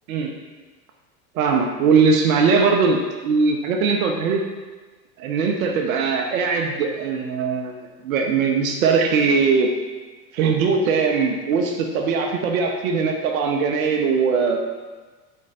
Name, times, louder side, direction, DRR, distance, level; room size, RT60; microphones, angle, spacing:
voice 1, 1.3-4.4 5.2-7.8 8.0-9.7 10.3-14.6, right 5 dB, 60° right, 2 dB, 0.6 m, -20 dB
4.2 x 3.0 x 3.9 m, 1.3 s
figure-of-eight pair, 80°, 47 cm